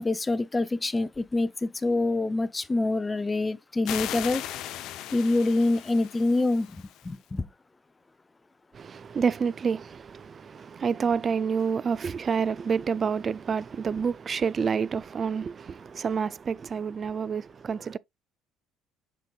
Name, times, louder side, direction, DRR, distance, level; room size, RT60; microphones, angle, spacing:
voice 1, 0.0-4.4 5.1-7.5, left 2 dB, 20° left, 0.7 m, -26 dB
sound 1, 3.8-7.2, left 12 dB, 70° left, 0.7 m, -37 dB
voice 2, 8.7-18.0, right 6 dB, 40° right, 0.4 m, -28 dB
7.4 x 5.3 x 2.4 m
supercardioid pair, 80°, 0 cm